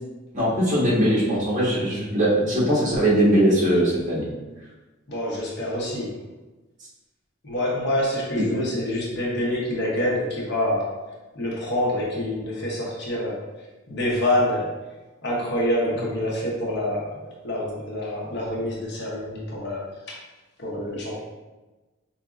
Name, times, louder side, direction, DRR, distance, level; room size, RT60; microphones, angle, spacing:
voice 1, 0.3-4.3, right 1 dB, 40° right, -7 dB, 1.3 m, -20 dB
voice 2, 5.1-6.2 7.4-10.9 11.3-14.7 15.2-20.1 20.6-21.2, left 1 dB, 60° left, -3 dB, 0.8 m, -26 dB
4.7 x 2.7 x 2.4 m, 1.2 s
head